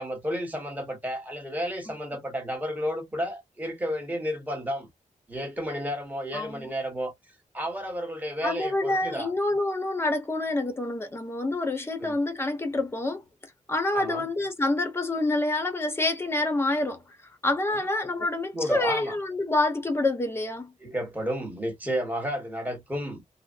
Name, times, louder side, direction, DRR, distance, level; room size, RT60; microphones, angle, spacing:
voice 1, 0.0-4.9 5.3-7.1 7.5-9.3 12.0-12.2 13.9-14.3 18.2-18.3 18.5-19.2 20.8-23.3, equal, 10° right, 1.3 m, -32 dB
voice 2, 6.3-6.7 8.4-13.2 13.7-17.2 17.4-20.7, left 2 dB, 20° left, 0.9 m, -27 dB
3.8 x 2.1 x 2.5 m
wide cardioid pair, 160°, 14 cm